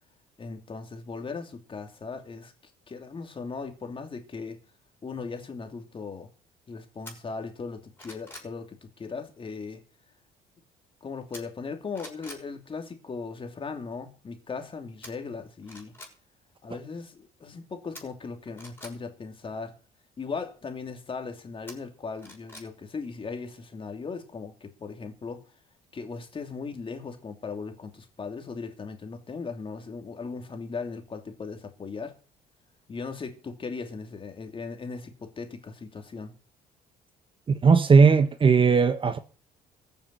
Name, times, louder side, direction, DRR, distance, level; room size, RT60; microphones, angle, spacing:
voice 1, 0.4-2.5 2.9-4.6 5.0-6.3 6.7-9.8 11.0-15.9 16.6-19.8 20.2-25.4 25.9-32.2 32.9-36.3, left 4 dB, 30° left, 2.9 m, -38 dB
sound 1, 7.0-7.2 7.7-8.5 11.3-11.7 11.9-12.4 15.0-15.1 15.6-16.1 17.9-18.9 21.7-22.7 23.0-23.1, left 1 dB, 15° left, 5.9 m, -45 dB
voice 2, 37.6-39.2, right 5 dB, 30° right, 1.3 m, -18 dB
14.5 x 7.3 x 8.1 m
cardioid pair, 110°, 17 cm